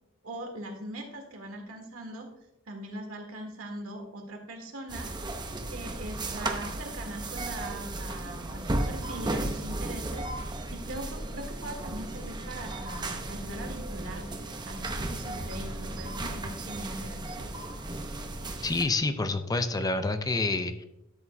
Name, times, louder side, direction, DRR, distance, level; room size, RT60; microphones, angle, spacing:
voice 1, 0.2-2.3 2.6-5.1 5.7-17.4, right 1 dB, 75° right, 2 dB, 1.8 m, -41 dB
sound 1, 4.9-18.8, right 2 dB, 20° right, 0.7 m, -35 dB
voice 2, 18.6-20.8, left 3 dB, 15° left, 9 dB, 0.4 m, -28 dB
12.0 x 7.2 x 2.2 m, 0.87 s
head